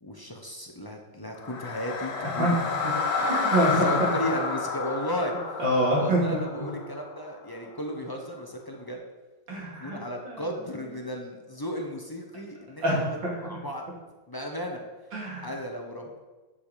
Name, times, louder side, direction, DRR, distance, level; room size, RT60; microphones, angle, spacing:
voice 1, 0.0-2.6 3.2-3.3 3.7-5.4 5.9-9.0 9.7-13.2 13.4-13.9 14.3-14.8 15.4-16.2, equal, 25° left, 1 dB, 0.5 m, -35 dB
sound 1, 1.4-7.5, left 4 dB, 60° left, 1.4 m, -30 dB
voice 2, 3.3-4.1 5.6-6.7 9.5-10.0 10.2-10.4 12.8-13.1 15.1-15.5, right 1 dB, 80° right, -4 dB, 3.3 m, -25 dB
9.9 x 5.7 x 5.0 m, 1.2 s
omnidirectional pair, 2.0 m